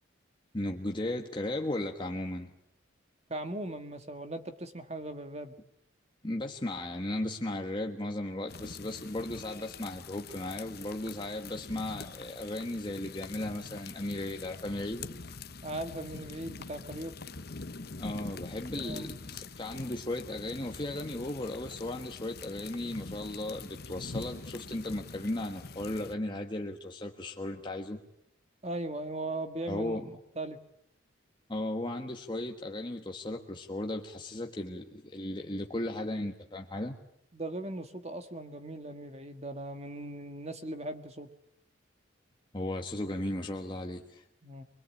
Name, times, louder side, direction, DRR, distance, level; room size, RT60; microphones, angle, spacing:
voice 1, 0.5-2.5 6.2-15.1 18.0-28.0 29.7-30.1 31.5-37.0 42.5-44.2, left 1 dB, 25° left, 2 dB, 1.4 m, -36 dB
voice 2, 3.3-5.5 15.6-17.2 18.7-19.2 28.6-30.6 37.3-41.3 44.4-44.6, right 1 dB, 35° right, 8 dB, 1.7 m, -39 dB
sound 1, 8.5-26.1, left 4 dB, 50° left, 1.0 m, -45 dB
24.0 x 22.0 x 8.5 m, 0.76 s
head